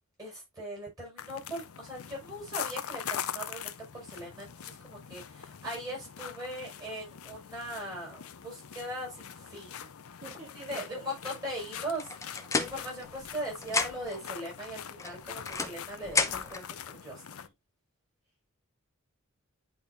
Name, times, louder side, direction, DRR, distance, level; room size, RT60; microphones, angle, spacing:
voice 1, 0.2-9.9 10.7-17.5, equal, 15° right, 5.1 m, -40 dB
sound 1, 1.2-17.5, left 8 dB, 75° left, 0.6 m, -43 dB
voice 2, 10.2-11.4 13.0-13.2, right 3 dB, 35° right, 2.4 m, -48 dB
sound 2, 12.0-13.4 13.6-14.2 15.0-16.7, left 4 dB, 15° left, 0.7 m, -32 dB
10.5 x 3.8 x 2.6 m
head